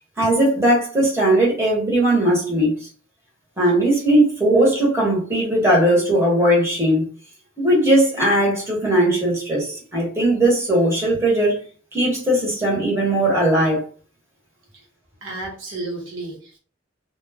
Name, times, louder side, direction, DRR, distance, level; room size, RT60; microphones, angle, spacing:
voice 1, 0.2-2.9 3.6-7.1 7.6-11.6 11.9-13.8, right 1 dB, 15° right, 1.1 m, -18 dB
voice 2, 15.2-16.6, right 2 dB, 75° right, 0.9 m, -32 dB
2.2 x 2.1 x 3.3 m
head